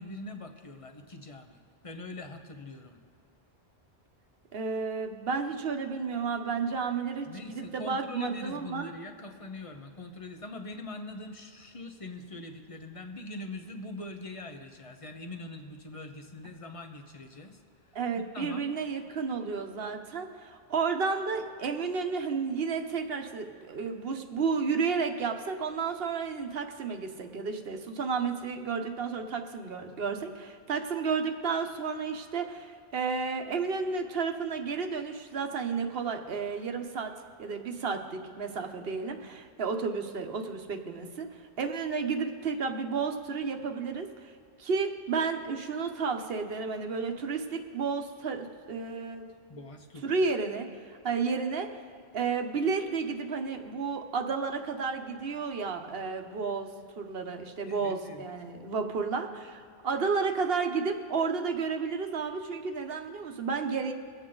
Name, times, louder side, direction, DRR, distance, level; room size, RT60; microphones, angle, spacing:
voice 1, 0.0-3.0 7.3-17.6 17.9-18.7 49.5-50.2 57.6-58.3, left 2 dB, 35° left, 6 dB, 0.9 m, -43 dB
voice 2, 4.5-8.9 17.9-37.1 37.4-44.3 44.6-49.2 50.0-51.7 52.1-63.9, right 5 dB, 70° right, 5 dB, 1.1 m, -32 dB
22.5 x 8.1 x 3.9 m, 2.3 s
omnidirectional pair, 1.1 m